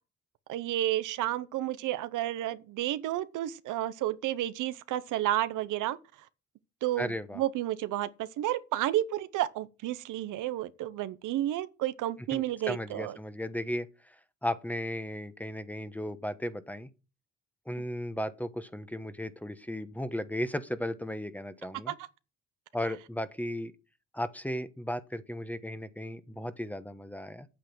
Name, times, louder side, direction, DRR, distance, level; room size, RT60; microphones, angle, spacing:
voice 1, 0.5-6.0 6.8-13.2 21.9-22.0, right 13 dB, 85° right, 0.8 m, -31 dB
voice 2, 7.0-7.4 12.3-14.1 14.4-16.9 17.7-21.9 22.7-23.7 24.1-27.5, left 1 dB, 5° left, 1.1 m, -35 dB
8.6 x 7.6 x 6.1 m
cardioid pair, 90°, 30 cm